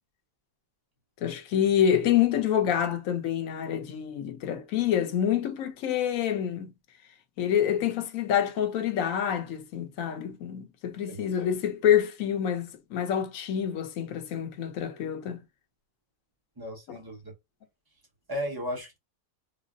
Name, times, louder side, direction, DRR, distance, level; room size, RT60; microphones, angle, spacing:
voice 1, 1.2-6.7 7.4-15.4 16.9-17.0, left 9 dB, 70° left, 1.0 m, -27 dB
voice 2, 16.6-17.3 18.3-19.0, equal, 20° right, 0.8 m, -35 dB
3.9 x 2.0 x 2.5 m
omnidirectional pair, 1.6 m